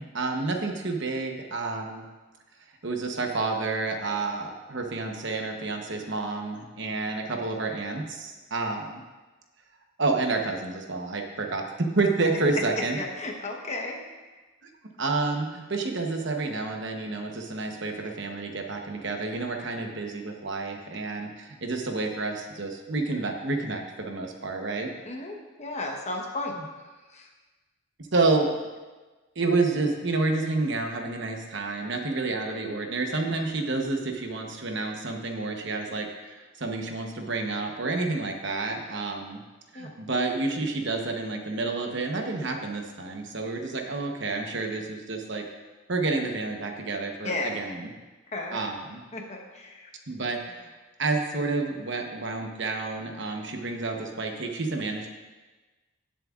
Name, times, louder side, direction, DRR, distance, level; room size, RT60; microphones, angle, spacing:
voice 1, 0.0-2.0 2.8-9.0 10.0-13.0 15.0-24.9 28.1-28.5 29.3-39.4 39.7-45.5 45.9-47.9 48.5-49.0 50.1-50.7 51.0-55.1, right 3 dB, 55° right, 3 dB, 1.0 m, -29 dB
voice 2, 12.7-14.0 25.1-26.5 27.1-27.3 39.7-39.9 47.2-47.5 48.3-48.6 49.1-49.9, left 2 dB, 30° left, 1 dB, 1.1 m, -34 dB
17.5 x 7.5 x 2.5 m, 1.3 s
head